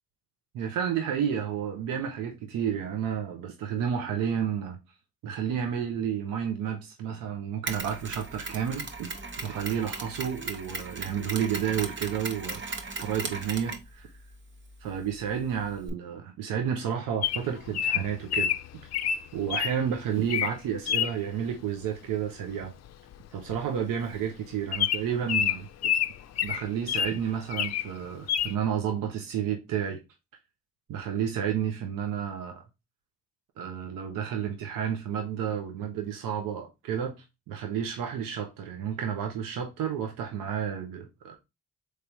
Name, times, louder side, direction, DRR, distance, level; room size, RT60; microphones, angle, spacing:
voice 1, 0.5-4.8 5.2-9.1 9.4-12.6 13.0-14.1 14.8-18.5 19.3-22.7 23.3-25.7 26.4-30.0 30.9-32.6 33.6-37.2 37.5-41.4, right 8 dB, 80° right, 0.7 m, -31 dB
Mechanisms, 7.7-15.9, right 3 dB, 35° right, 0.9 m, -38 dB
Bird vocalization bird call bird song, 17.2-19.7 20.2-20.5 20.9-21.1 22.6-22.9 23.1-23.2 23.5-23.7 24.1-24.2 24.7-27.2 27.5-27.9 28.3-28.5, left 9 dB, 55° left, 0.4 m, -28 dB
3.5 x 3.2 x 2.9 m
supercardioid pair, 45°, 33 cm